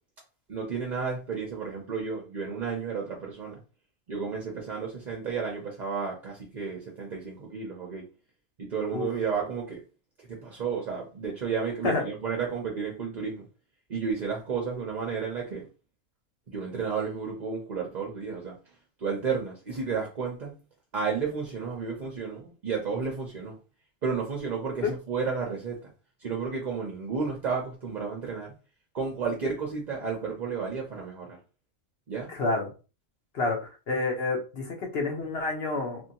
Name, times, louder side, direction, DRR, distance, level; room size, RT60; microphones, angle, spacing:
voice 1, 0.5-3.6 4.1-8.1 8.6-9.8 10.2-13.4 13.9-15.7 16.5-18.6 19.0-20.6 20.9-23.6 24.0-25.9 26.2-28.5 28.9-31.4 32.1-32.3, right 5 dB, 45° right, 0.6 m, -32 dB
voice 2, 32.3-32.7 33.3-36.0, left 3 dB, 50° left, 1.1 m, -28 dB
3.0 x 2.7 x 2.8 m
omnidirectional pair, 1.4 m